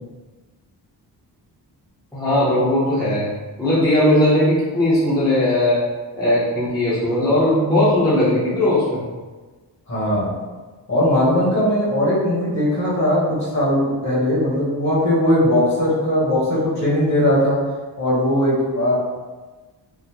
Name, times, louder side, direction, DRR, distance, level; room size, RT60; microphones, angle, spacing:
voice 1, 2.1-3.3 3.6-5.8 6.1-9.1, left 1 dB, 10° left, -11 dB, 0.6 m, -18 dB
voice 2, 9.9-10.4 10.9-17.6 18.0-19.0, left 1 dB, 40° left, -7 dB, 1.1 m, -19 dB
3.7 x 2.0 x 2.8 m, 1.3 s
wide cardioid pair, 170°, 42 cm